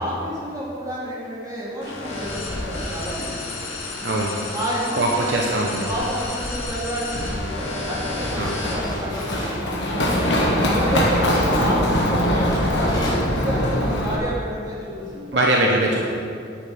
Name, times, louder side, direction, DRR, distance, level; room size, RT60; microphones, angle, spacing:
voice 1, 0.0-3.5 3.9-4.2 4.5-5.4 5.8-10.2 10.7-15.4 16.0-16.1, equal, 20° right, -6 dB, 2.8 m, -30 dB
sound 1, 1.8-8.9, left 2 dB, 85° left, 2.6 m, -31 dB
voice 2, 4.0-4.4 5.0-5.9 8.4-8.6 11.0-11.1 15.3-16.1, right 1 dB, 65° right, -1 dB, 1.0 m, -21 dB
sound 2, 8.0-13.1, equal, 20° left, 2.6 m, -33 dB
Run, 8.5-14.2, left 1 dB, 65° left, 1.6 m, -22 dB
10.5 x 8.6 x 5.1 m, 2.5 s
head